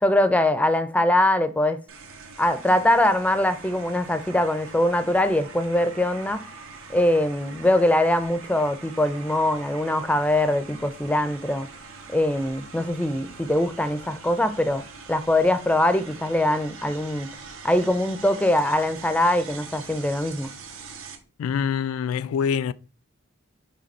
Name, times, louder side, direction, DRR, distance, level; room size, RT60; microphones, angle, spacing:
voice 1, 0.0-1.8 2.4-6.4 6.9-11.7 12.1-14.8 15.1-17.3 17.6-20.5, left 1 dB, 5° left, 0.4 m, -22 dB
sound 1, 1.9-21.1, right 4 dB, 85° right, 1.1 m, -43 dB
voice 2, 21.4-22.7, left 7 dB, 85° left, 0.3 m, -25 dB
5.1 x 3.6 x 5.3 m
head